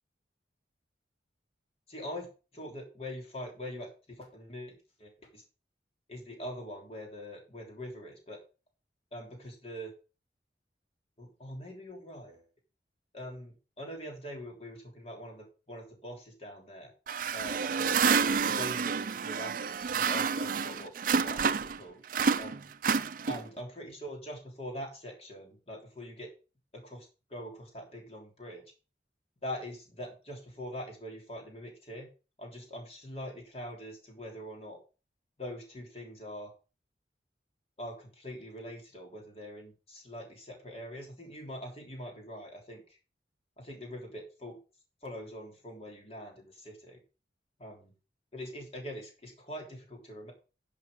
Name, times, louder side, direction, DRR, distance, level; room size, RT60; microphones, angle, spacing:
voice 1, 1.9-2.3 2.5-3.9 4.2-5.4 6.1-8.4 9.1-9.9 11.2-12.4 13.1-16.9 17.3-18.0 18.4-22.0 22.3-22.7 23.3-26.3 26.7-28.6 29.4-32.1 32.4-34.8 35.4-36.5 37.8-42.8 43.6-44.6 45.0-47.0 47.6-47.9 48.3-50.3, equal, 35° left, 1 dB, 3.3 m, -43 dB
sound 1, 17.1-21.8 22.1-23.6, right 6 dB, 50° right, 0.5 m, -29 dB
11.0 x 6.0 x 5.1 m, 0.33 s
head